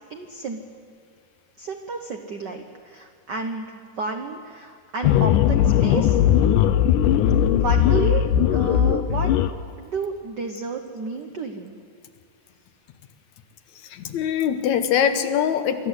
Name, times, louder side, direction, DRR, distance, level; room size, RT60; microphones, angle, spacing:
voice 1, 0.1-0.6 1.6-6.2 7.5-8.2 8.5-9.3 9.8-11.8, right 4 dB, 75° right, 4 dB, 0.9 m, -31 dB
sound 1, 5.0-9.5, left 10 dB, 85° left, 2.2 m, -18 dB
voice 2, 13.9-15.9, left 8 dB, 70° left, 8 dB, 2.2 m, -22 dB
25.0 x 13.5 x 8.2 m, 2.2 s
omnidirectional pair, 3.5 m